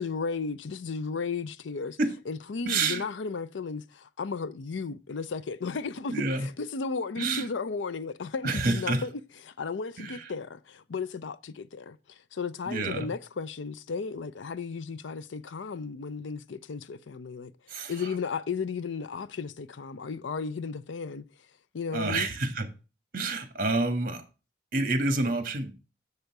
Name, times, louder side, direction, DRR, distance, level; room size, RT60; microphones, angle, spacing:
voice 1, 0.0-2.0 2.3-6.1 6.4-9.1 9.4-17.5 17.9-21.2 21.7-22.3, left 5 dB, 85° left, 0.5 m, -34 dB
voice 2, 2.6-3.0 6.1-6.5 7.2-7.5 8.4-9.0 10.0-10.3 12.7-13.1 17.7-18.1 21.9-22.7 23.1-24.2 24.7-25.7, right 3 dB, 50° right, 1.5 m, -28 dB
6.9 x 6.6 x 4.6 m
head